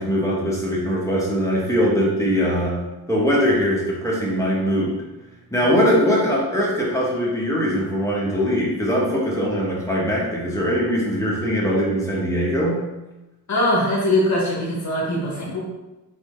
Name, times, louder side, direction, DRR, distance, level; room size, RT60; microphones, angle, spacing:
voice 1, 0.0-2.8 3.1-5.0 5.5-12.8, equal, 10° left, -5 dB, 1.1 m, -21 dB
voice 2, 13.5-15.6, left 1 dB, 50° left, -4 dB, 1.4 m, -22 dB
4.1 x 4.1 x 3.1 m, 1.0 s
wide cardioid pair, 135°, 37 cm